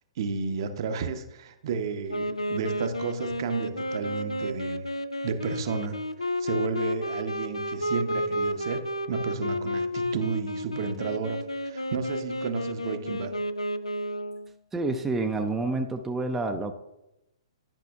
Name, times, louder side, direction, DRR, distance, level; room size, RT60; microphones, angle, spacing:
voice 1, 0.2-4.9 5.2-6.0 6.4-13.3, right 5 dB, 50° right, 7 dB, 0.7 m, -32 dB
Wind instrument woodwind instrument, 2.1-14.5, left 1 dB, 90° left, 0.4 m, -31 dB
voice 2, 14.7-16.8, right 2 dB, 10° right, 4 dB, 0.5 m, -28 dB
10.5 x 5.8 x 2.4 m, 0.89 s
figure-of-eight pair, 115°, 3 cm